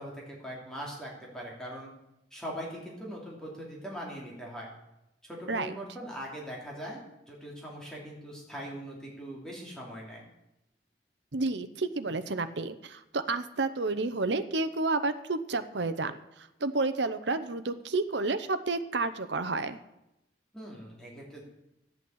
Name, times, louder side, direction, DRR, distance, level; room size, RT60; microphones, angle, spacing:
voice 1, 0.0-1.9 2.3-4.7 5.2-10.2 20.5-21.4, equal, 5° left, -4 dB, 3.1 m, -41 dB
voice 2, 11.3-19.8, right 3 dB, 65° right, 10 dB, 0.9 m, -30 dB
13.0 x 8.2 x 8.0 m, 0.88 s
head